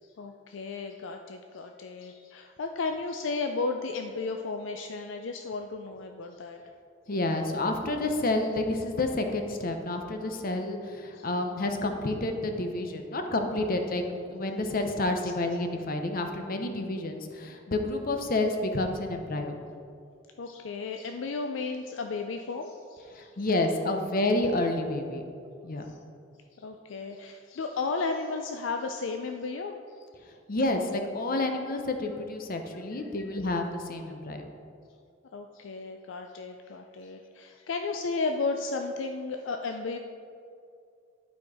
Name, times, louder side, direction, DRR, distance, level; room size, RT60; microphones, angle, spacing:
voice 1, 0.2-6.6 11.1-11.3 20.4-23.3 25.9-26.0 26.5-29.7 33.2-33.3 35.3-40.0, left 4 dB, 70° left, 5 dB, 0.4 m, -34 dB
voice 2, 7.1-14.0 14.3-19.6 23.1-25.2 25.6-25.9 30.5-34.5, left 2 dB, 50° left, 5 dB, 0.8 m, -29 dB
11.5 x 4.4 x 4.8 m, 2.4 s
head